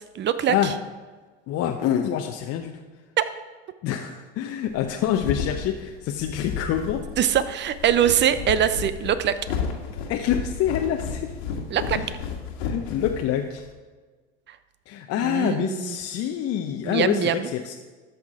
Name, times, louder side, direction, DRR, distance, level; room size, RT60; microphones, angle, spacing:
voice 1, 0.1-0.7 3.2-3.3 7.2-9.4 11.7-12.0 15.2-16.0 16.8-17.5, right 9 dB, 35° right, 13 dB, 0.8 m, -23 dB
voice 2, 1.5-2.7 3.8-7.0 10.1-11.3 11.9-12.1 12.6-13.6 14.9-17.7, left 10 dB, 50° left, 3 dB, 0.8 m, -26 dB
sound 1, 4.8-13.7, left 6 dB, 75° left, 1.8 m, -32 dB
13.0 x 6.0 x 4.9 m, 1.4 s
hypercardioid pair, 90°, 32 cm